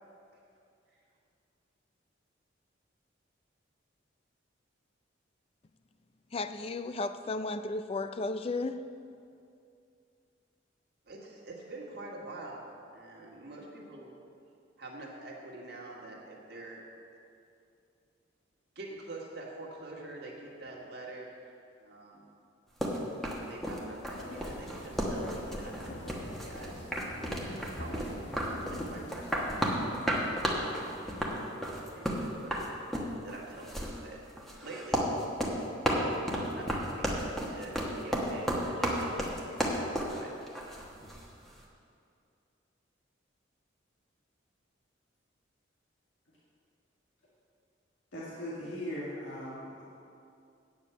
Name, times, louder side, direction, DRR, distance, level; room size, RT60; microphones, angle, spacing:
voice 1, 6.3-8.9, left 3 dB, 30° left, 11 dB, 0.3 m, -34 dB
voice 2, 11.1-12.7 12.9-14.1 14.8-16.9 18.8-21.5 21.8-22.3 23.5-26.9 27.7-32.7 33.2-34.2 34.6-35.1 35.9-40.4, right 2 dB, 60° right, -2 dB, 1.8 m, -46 dB
sound 1, 22.8-41.2, equal, ahead, 1.1 m, -33 dB
sound 2, 24.1-31.8, left 1 dB, 65° left, 1.4 m, -45 dB
voice 3, 48.1-49.8, equal, 85° left, -7 dB, 2.0 m, -39 dB
9.4 x 7.2 x 7.0 m, 2.5 s
head